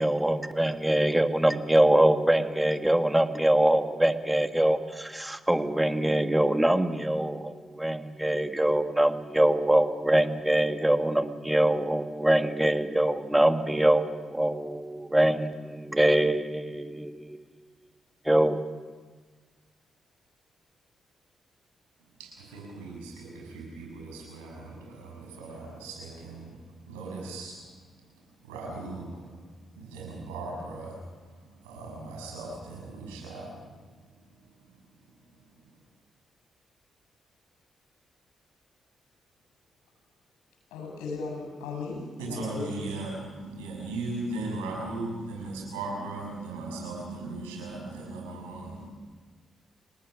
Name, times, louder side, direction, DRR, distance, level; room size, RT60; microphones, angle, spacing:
voice 1, 0.0-17.4 18.3-18.6, right 1 dB, 10° right, 8 dB, 1.8 m, -24 dB
voice 2, 22.2-27.6 28.1-29.3 29.8-33.7 34.7-34.8 42.2-49.0, right 2 dB, 90° right, -1 dB, 6.9 m, -38 dB
voice 3, 40.7-42.7, left 4 dB, 80° left, 2 dB, 7.9 m, -36 dB
29.0 x 19.5 x 6.4 m, 1.4 s
hypercardioid pair, 40°, 0 cm